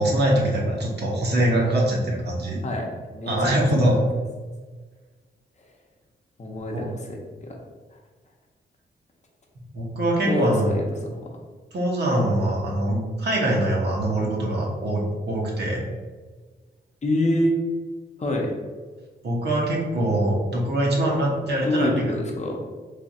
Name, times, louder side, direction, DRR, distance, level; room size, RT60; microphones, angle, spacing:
voice 1, 0.0-2.6 3.3-4.0 6.7-6.9 9.7-10.7 11.7-15.8 19.2-22.1, right 1 dB, 65° right, -3 dB, 1.0 m, -23 dB
voice 2, 2.6-3.5 5.6-5.7 6.4-7.6 7.9-8.0 10.3-10.8 11.1-11.3 17.0-17.5 18.2-18.5 21.6-22.6, left 1 dB, 40° left, 0 dB, 0.8 m, -26 dB
3.3 x 2.4 x 4.1 m, 1.4 s
cardioid pair, 95°, 18 cm